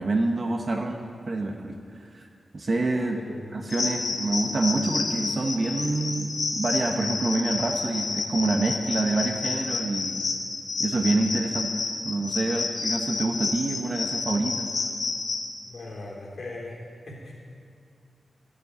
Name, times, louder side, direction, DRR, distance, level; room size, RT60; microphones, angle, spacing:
voice 1, 0.0-2.3 2.5-3.2 3.5-10.2 10.8-11.7 12.0-14.7, right 2 dB, 45° right, 2 dB, 0.9 m, -27 dB
voice 2, 3.3-3.6 15.6-16.8 17.0-17.3, left 2 dB, 60° left, -3 dB, 3.2 m, -39 dB
sound 1, 3.7-15.5, left 4 dB, 80° left, 1.5 m, -30 dB
12.5 x 7.7 x 8.1 m, 2.3 s
wide cardioid pair, 140°, 0 cm